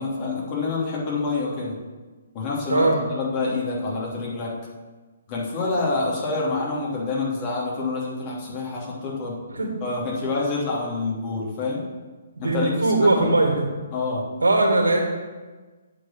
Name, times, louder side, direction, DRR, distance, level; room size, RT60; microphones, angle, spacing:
voice 1, 0.0-1.8 2.3-4.5 5.3-9.4 9.8-11.8 12.4-13.3 13.9-14.3, left 3 dB, 35° left, -4 dB, 3.0 m, -27 dB
voice 2, 2.7-3.0 9.5-9.7 12.4-13.5 14.4-15.0, right 2 dB, 90° right, 1 dB, 2.2 m, -19 dB
8.9 x 4.8 x 7.4 m, 1.3 s
hypercardioid pair, 140°, 0 cm